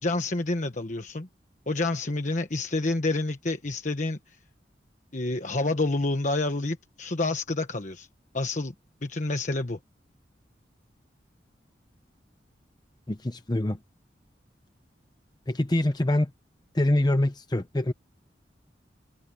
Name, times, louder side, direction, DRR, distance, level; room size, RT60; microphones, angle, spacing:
voice 1, 0.0-1.3 1.7-4.4 5.1-8.1 8.3-8.7 9.0-9.8, left 2 dB, 45° left, 1.2 m, -28 dB
voice 2, 13.1-13.8 15.5-16.3 16.7-17.9, left 1 dB, 25° left, 0.7 m, -25 dB
open air
head